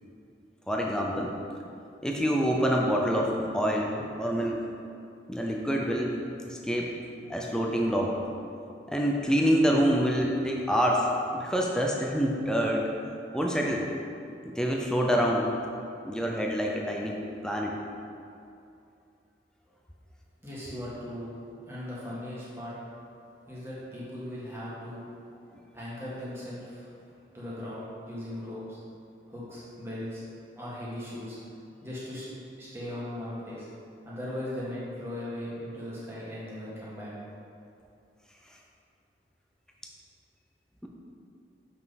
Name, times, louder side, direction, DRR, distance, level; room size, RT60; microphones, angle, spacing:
voice 1, 0.7-1.3 2.0-4.6 5.3-6.1 6.5-6.9 7.3-8.2 8.9-11.1 11.3-12.8 13.3-13.9 14.5-15.5 16.0-17.2 17.4-17.7, equal, 5° left, -1 dB, 0.6 m, -26 dB
voice 2, 20.4-21.4 21.7-22.7 23.5-25.0 25.7-26.9 27.3-28.8 29.3-30.2 30.5-31.4 31.8-32.3 32.6-33.7 34.0-37.1, left 1 dB, 15° right, -8 dB, 1.7 m, -38 dB
7.2 x 5.6 x 4.1 m, 2.6 s
head